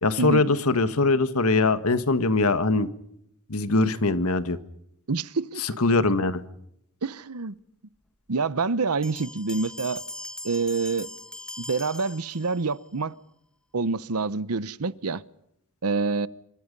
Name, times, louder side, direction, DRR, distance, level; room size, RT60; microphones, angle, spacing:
voice 1, 0.0-2.9 3.5-4.6 5.6-6.4, left 3 dB, 75° left, 1.6 m, -22 dB
voice 2, 5.1-5.6 7.0-7.6 8.3-10.0 10.4-11.1 11.6-13.2 13.7-15.2 15.8-16.3, right 4 dB, 80° right, 0.9 m, -27 dB
Bell, 9.0-12.8, left 1 dB, 5° left, 1.8 m, -40 dB
27.5 x 24.5 x 5.4 m
head